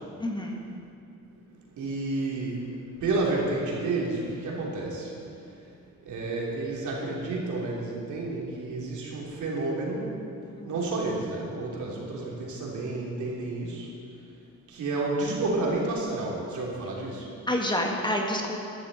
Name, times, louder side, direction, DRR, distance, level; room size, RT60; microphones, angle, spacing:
voice 1, 0.2-0.6 10.6-10.7 17.5-18.6, left 1 dB, 15° left, 1 dB, 1.6 m, -28 dB
voice 2, 1.7-5.7 6.0-10.1 10.7-13.9 14.7-17.3, right 2 dB, 75° right, -3 dB, 3.2 m, -30 dB
14.5 x 11.5 x 4.2 m, 2.5 s
cardioid pair, 90°, 30 cm